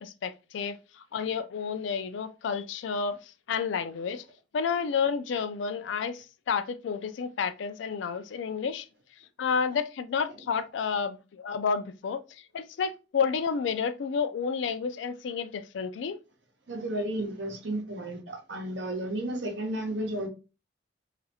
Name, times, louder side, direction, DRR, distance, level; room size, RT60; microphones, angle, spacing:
voice 1, 0.0-3.2 3.5-4.2 4.5-8.9 9.4-12.2 12.5-16.2, left 6 dB, 75° left, 0.3 m, -30 dB
voice 2, 16.7-20.3, right 1 dB, 70° right, 0.8 m, -33 dB
3.1 x 2.5 x 2.8 m
head